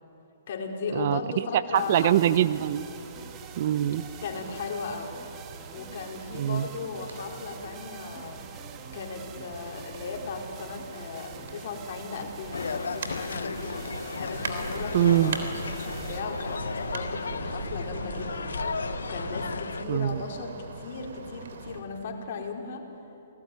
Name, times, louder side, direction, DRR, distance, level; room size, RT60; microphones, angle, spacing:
voice 1, 0.5-2.2 4.2-5.1 5.7-8.4 8.9-13.7 14.2-18.6 19.1-22.9, left 4 dB, 55° left, 1 dB, 4.4 m, -36 dB
voice 2, 1.7-2.9 3.6-4.0 6.4-6.7 14.9-15.4 19.9-20.2, right 11 dB, 50° right, 16 dB, 0.8 m, -23 dB
sound 1, 1.8-17.8, right 8 dB, 25° right, 1.7 m, -48 dB
sound 2, 1.8-21.8, right 4 dB, 70° right, 3.4 m, -41 dB
sound 3, 12.5-19.8, left 5 dB, 85° left, 1.1 m, -34 dB
28.0 x 19.0 x 9.7 m, 2.9 s
hypercardioid pair, 140°, 0 cm